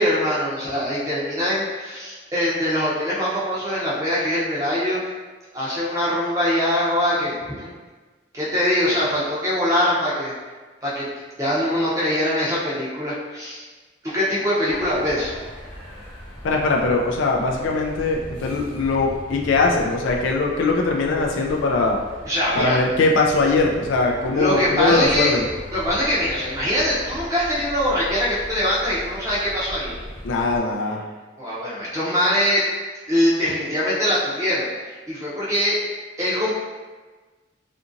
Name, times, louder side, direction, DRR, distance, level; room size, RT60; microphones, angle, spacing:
voice 1, 0.0-5.0 5.5-7.7 8.3-10.3 10.8-11.1 11.4-13.6 14.0-15.3 22.3-22.8 24.3-25.3 25.7-30.0 31.4-32.7 33.1-35.8 36.2-36.5, equal, 15° right, -8 dB, 0.6 m, -23 dB
sound 1, 14.7-30.6, equal, 30° left, 0.7 m, -39 dB
voice 2, 16.4-22.0 22.5-25.4 30.2-31.0, left 3 dB, 85° left, 0 dB, 0.3 m, -21 dB
2.7 x 2.5 x 2.5 m, 1.3 s
head